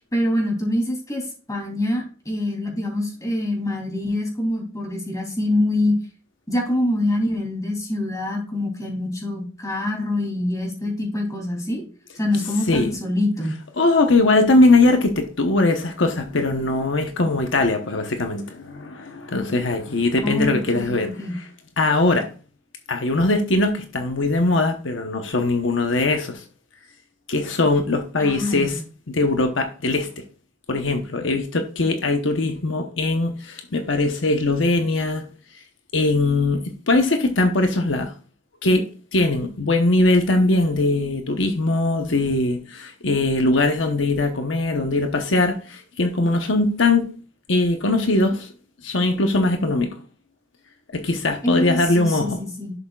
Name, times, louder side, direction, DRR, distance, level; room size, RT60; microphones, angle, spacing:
voice 1, 0.1-1.2 1.5-5.9 6.5-11.9 12.2-13.6 20.2-21.3 28.2-28.8 51.4-52.7, left 1 dB, 20° left, 3.2 m, -25 dB
voice 2, 13.8-21.4 21.8-22.3 22.9-26.4 27.3-28.8 29.1-30.2 30.7-35.3 35.9-38.1 38.6-47.1 47.5-48.5 48.8-49.9 50.9-52.4, left 2 dB, 75° left, 1.0 m, -21 dB
11.0 x 6.7 x 2.4 m
head